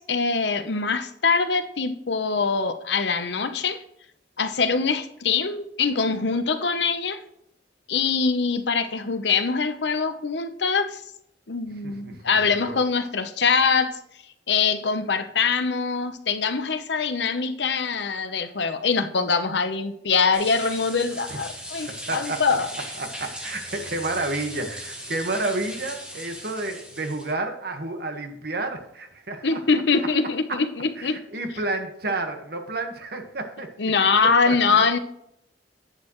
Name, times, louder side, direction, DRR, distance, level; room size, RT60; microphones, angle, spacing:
voice 1, 0.0-3.8 4.4-7.2 7.9-11.0 11.5-14.0 14.5-22.7 29.4-31.2 33.8-35.0, left 5 dB, 70° left, 9 dB, 0.9 m, -23 dB
voice 2, 11.8-12.8 21.3-21.4 21.9-22.6 23.0-29.6 30.0-30.1 30.5-30.6 31.0-34.8, right 2 dB, 60° right, 5 dB, 1.5 m, -31 dB
sound 1, 20.3-27.3, equal, 5° right, 2.1 m, -38 dB
10.0 x 8.7 x 3.2 m, 0.74 s
head